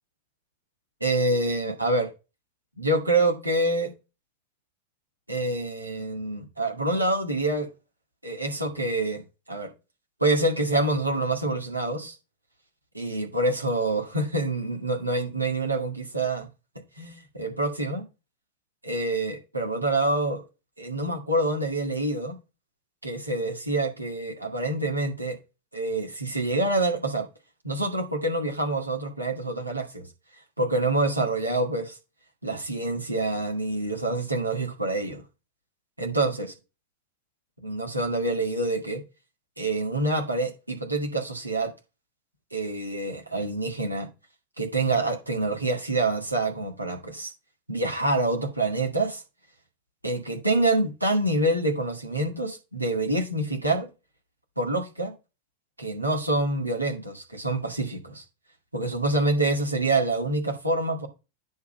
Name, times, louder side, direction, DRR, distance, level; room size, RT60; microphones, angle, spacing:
voice 1, 1.0-2.1 2.8-3.9 5.3-7.7 8.2-9.2 9.5-9.7 10.2-12.2 12.9-16.5 17.0-18.0 18.8-20.4 20.8-22.4 23.0-25.4 25.7-27.2 27.6-30.0 30.6-32.0 32.4-35.2 36.0-36.5 37.6-39.0 39.6-41.7 42.5-44.1 44.6-47.3 47.7-49.2 50.0-53.9 54.6-55.1 55.8-58.2 58.7-61.1, right 2 dB, 85° right, 2.2 m, -26 dB
9.5 x 3.5 x 5.3 m
figure-of-eight pair, 90°, 0 cm